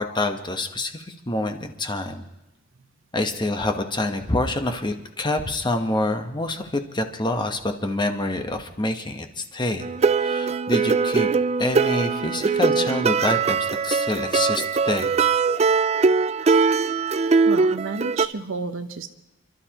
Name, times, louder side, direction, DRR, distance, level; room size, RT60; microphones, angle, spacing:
voice 1, 0.0-2.2 3.1-9.9 10.1-11.3 11.6-15.2, left 2 dB, 25° left, 6 dB, 1.1 m, -26 dB
sound 1, 9.8-18.3, right 5 dB, 30° right, 0.4 m, -21 dB
voice 2, 17.5-19.1, right 3 dB, 75° right, 8 dB, 0.9 m, -31 dB
30.0 x 12.5 x 3.0 m, 1.0 s
head